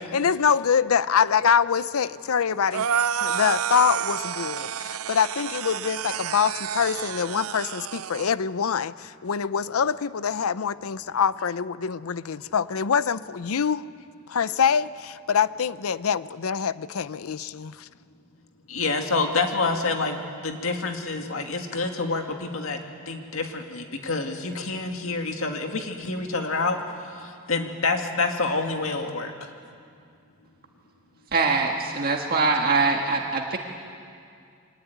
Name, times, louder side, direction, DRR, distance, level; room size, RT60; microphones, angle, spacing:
voice 1, 0.1-2.9 3.2-13.9 14.3-17.9, left 7 dB, 85° left, 16 dB, 0.6 m, -25 dB
sound 1, 2.7-8.3, right 8 dB, 85° right, 0.5 m, -29 dB
voice 2, 18.7-22.8 23.1-29.5, left 3 dB, 70° left, 4 dB, 2.2 m, -27 dB
voice 3, 31.3-33.6, right 4 dB, 45° right, 1 dB, 1.6 m, -23 dB
24.0 x 19.5 x 9.3 m, 2.3 s
head